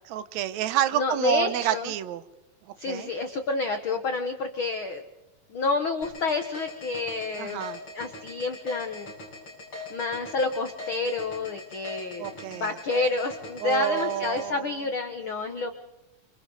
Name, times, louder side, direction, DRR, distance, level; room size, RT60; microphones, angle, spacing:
voice 1, 0.1-2.2 2.9-3.1 7.4-7.8 12.2-12.7 13.6-14.7, right 11 dB, 80° right, 13 dB, 1.7 m, -28 dB
voice 2, 0.9-1.9 2.8-5.0 5.5-7.6 7.9-9.1 9.9-15.7, left 3 dB, 80° left, 7 dB, 1.1 m, -29 dB
sound 1, 6.0-14.4, left 3 dB, 30° left, 8.8 m, -40 dB
29.0 x 27.0 x 4.0 m, 0.96 s
omnidirectional pair, 4.3 m